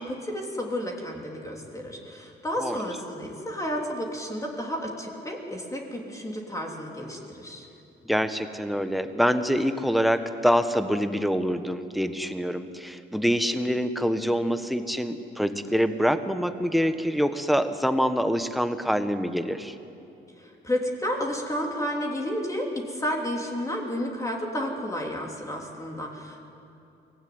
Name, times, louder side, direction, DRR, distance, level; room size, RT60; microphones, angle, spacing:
voice 1, 0.0-7.7 20.4-26.4, equal, 15° left, 0 dB, 3.3 m, -31 dB
voice 2, 8.0-19.7, equal, ahead, 9 dB, 1.4 m, -25 dB
23.5 x 17.0 x 9.5 m, 2.7 s
cardioid pair, 90°, 20 cm